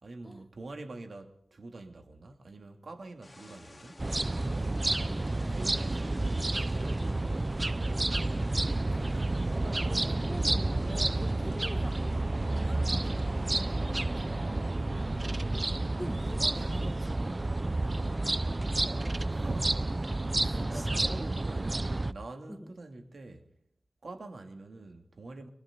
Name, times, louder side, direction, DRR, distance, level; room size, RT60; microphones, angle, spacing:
voice 1, 0.0-4.1 4.5-5.1 5.5-7.8 11.5-11.7 14.8-15.2 18.8-23.5 24.0-25.5, right 2 dB, 75° right, 3.0 m, -45 dB
sound 1, 3.2-13.6, left 2 dB, 35° left, 3.7 m, -56 dB
sound 2, 4.0-22.1, right 2 dB, 35° right, 0.8 m, -30 dB
voice 2, 9.5-14.7 16.0-17.4 20.4-21.3 22.5-22.7, equal, 5° left, 1.5 m, -44 dB
28.0 x 25.5 x 4.0 m
wide cardioid pair, 65°, 0 cm